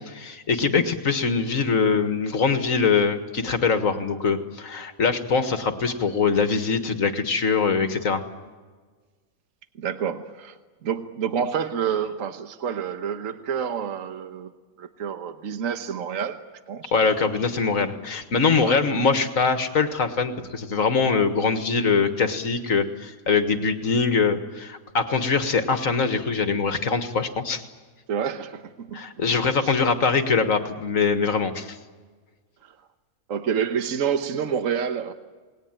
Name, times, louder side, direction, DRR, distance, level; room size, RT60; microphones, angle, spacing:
voice 1, 0.0-8.2 16.9-27.6 28.9-31.8, left 5 dB, 70° left, 8 dB, 2.0 m, -23 dB
voice 2, 9.8-14.5 14.8-16.4 16.7-16.9 18.6-18.8 28.1-29.0 29.6-29.7 32.6-32.8 33.3-35.1, right 7 dB, 70° right, 9 dB, 1.5 m, -28 dB
28.0 x 20.0 x 9.0 m, 1.4 s
omnidirectional pair, 1.5 m